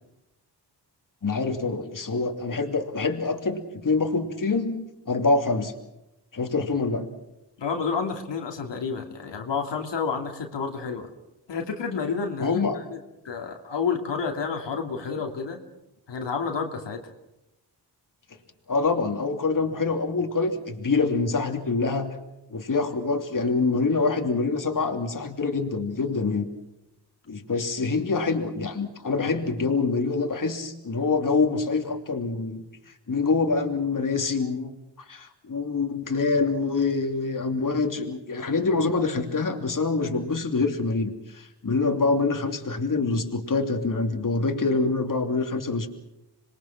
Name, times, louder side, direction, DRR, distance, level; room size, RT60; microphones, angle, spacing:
voice 1, 1.2-5.7 6.3-7.1 12.4-12.8 18.7-22.2 22.5-26.5 27.3-32.6 33.1-34.7 35.1-45.9, left 4 dB, 50° left, 4 dB, 2.9 m, -25 dB
voice 2, 7.6-11.1 11.5-13.0 13.2-15.6 16.1-17.0, left 5 dB, 85° left, 3 dB, 2.9 m, -30 dB
26.5 x 22.0 x 6.0 m, 0.90 s
cardioid pair, 70°, 42 cm